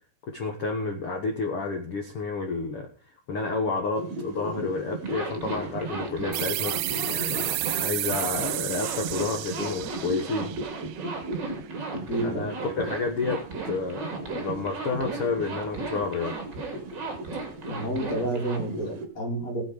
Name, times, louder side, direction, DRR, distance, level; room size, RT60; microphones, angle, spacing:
voice 1, 0.3-2.9 3.3-10.5 12.2-16.4, left 4 dB, 75° left, 3 dB, 1.3 m, -30 dB
sound 1, 3.9-19.1, right 2 dB, 50° right, 2.4 m, -38 dB
Zipper (clothing), 5.0-18.6, right 3 dB, 30° right, 2.7 m, -36 dB
sound 2, 6.3-11.6, right 16 dB, 80° right, 2.7 m, -32 dB
voice 2, 11.9-12.5 17.7-19.6, right 1 dB, 40° left, 0 dB, 4.7 m, -30 dB
19.0 x 7.2 x 5.1 m, 0.40 s
omnidirectional pair, 4.7 m